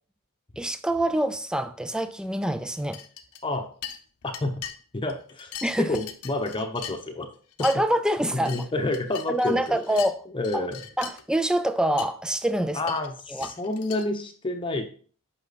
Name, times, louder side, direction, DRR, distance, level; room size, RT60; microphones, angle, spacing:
voice 1, 0.6-3.0 5.6-6.0 7.6-8.6 9.3-10.2 10.5-10.6 11.0-12.8 13.3-13.5, right 1 dB, 5° right, 0.4 m, -25 dB
sound 1, 2.9-3.6 3.8-4.8 5.1-7.2 7.5-7.8 8.2-10.1 10.4-11.2 11.7-11.8 12.0-12.1 12.8-14.1, left 9 dB, 85° left, 0.9 m, -40 dB
voice 2, 4.9-5.5 5.8-7.3 8.3-9.8 10.3-10.8 12.7-14.8, left 2 dB, 20° left, 0.8 m, -29 dB
8.4 x 5.7 x 4.1 m
head